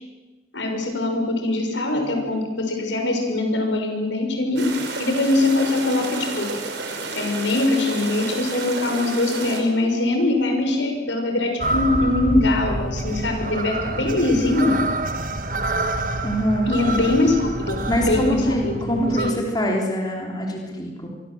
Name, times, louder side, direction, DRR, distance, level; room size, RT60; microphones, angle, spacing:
voice 1, 0.5-4.6 5.0-6.4 7.1-14.7 16.7-17.8 18.1-19.3, left 2 dB, 80° left, 4 dB, 6.3 m, -22 dB
sound 1, 4.6-9.6, right 3 dB, 75° right, 5.4 m, -31 dB
sound 2, 11.6-19.3, right 2 dB, 45° right, 1.6 m, -27 dB
voice 2, 16.2-16.7 17.9-21.1, equal, 20° left, 0 dB, 3.5 m, -24 dB
26.0 x 23.5 x 7.9 m, 1.2 s
head